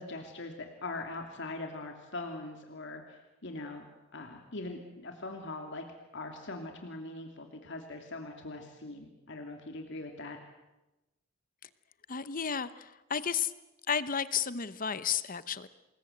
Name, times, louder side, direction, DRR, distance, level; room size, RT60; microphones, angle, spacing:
voice 1, 0.0-3.9 4.1-5.8 6.1-10.4, left 2 dB, 60° left, 3 dB, 2.8 m, -41 dB
voice 2, 12.1-13.5 13.9-15.7, left 7 dB, 45° left, 14 dB, 0.9 m, -32 dB
28.0 x 21.5 x 8.0 m, 1.0 s
head